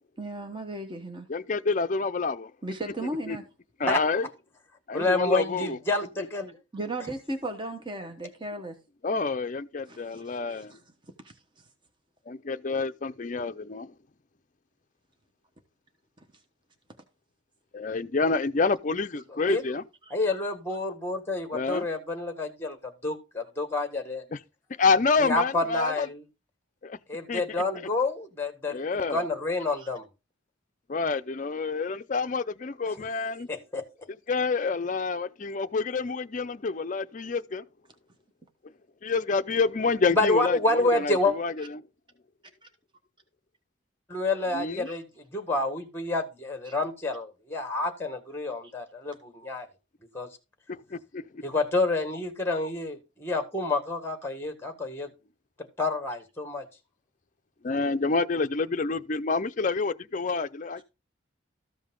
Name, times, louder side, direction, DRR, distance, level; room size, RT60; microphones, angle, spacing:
voice 1, 0.2-1.3 2.6-3.5 6.7-8.8 9.9-10.7 11.2-11.3 20.1-20.2 29.8-29.9 44.9-45.0 46.6-46.7 48.6-48.7, right 1 dB, 25° right, 1.1 m, -36 dB
voice 2, 1.3-2.5 3.3-3.4 3.8-4.3 4.9-5.8 9.0-10.8 12.3-13.9 17.7-19.8 21.5-21.9 24.3-24.4 24.8-26.1 26.8-27.0 27.3-27.4 28.7-29.3 30.9-33.5 34.3-37.6 39.0-41.8 44.5-44.9 50.7-51.4 57.6-60.8, left 4 dB, 40° left, 0.5 m, -28 dB
voice 3, 4.9-6.6 19.5-19.6 20.1-24.2 25.2-26.2 27.1-30.0 33.5-33.8 40.1-41.3 44.1-45.0 45.3-49.7 50.1-50.3 51.4-55.1 55.8-56.6, left 2 dB, 10° left, 1.6 m, -28 dB
14.0 x 5.4 x 3.7 m
head